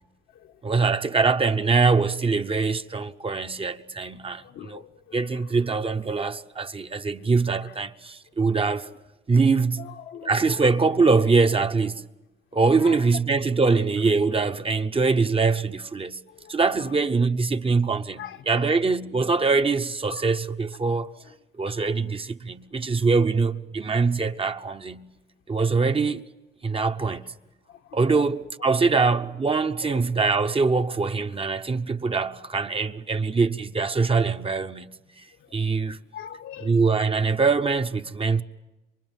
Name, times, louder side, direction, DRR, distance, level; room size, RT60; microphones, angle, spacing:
voice 1, 0.6-4.8 5.1-8.9 9.3-9.9 10.2-12.1 12.5-16.2 16.5-21.1 21.6-25.1 25.5-26.2 26.6-27.3 27.9-34.9 35.5-36.0 36.6-38.4, right 4 dB, 30° right, 1.0 m, -23 dB
voice 2, 4.4-5.5 7.6-7.7 9.8-11.0 12.5-13.1 16.3-16.9 18.2-18.8 20.1-20.3 21.2-21.4 21.7-22.0 22.9-23.0 24.2-24.3 24.7-24.8 27.1-27.2 27.7-28.3 28.9-29.0 29.9-30.4 30.7-30.8 35.4-35.6 36.1-36.8, left 10 dB, 80° left, 1.5 m, -43 dB
27.5 x 24.0 x 9.2 m
cardioid pair, 90°, 20 cm